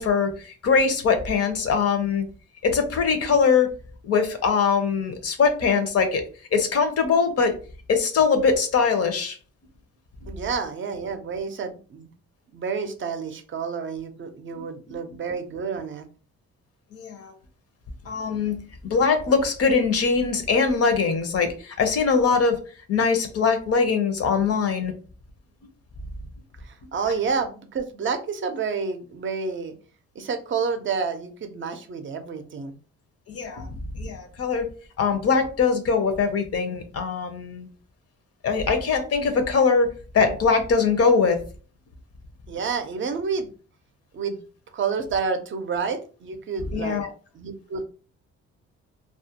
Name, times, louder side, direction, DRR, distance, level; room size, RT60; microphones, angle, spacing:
voice 1, 0.0-2.2 2.6-3.7 4.0-6.2 6.5-7.5 7.9-9.4 16.9-17.3 18.1-22.6 22.9-24.9 33.3-34.7 35.0-37.7 38.4-41.4 46.7-47.1, left 5 dB, 50° left, 7 dB, 0.6 m, -22 dB
voice 2, 10.3-12.1 12.5-16.1 26.6-29.7 30.2-32.7 42.5-43.5 44.1-44.4 44.7-47.1 47.3-47.8, right 5 dB, 40° right, 7 dB, 0.5 m, -29 dB
2.3 x 2.1 x 2.8 m, 0.38 s
cardioid pair, 90°, 30 cm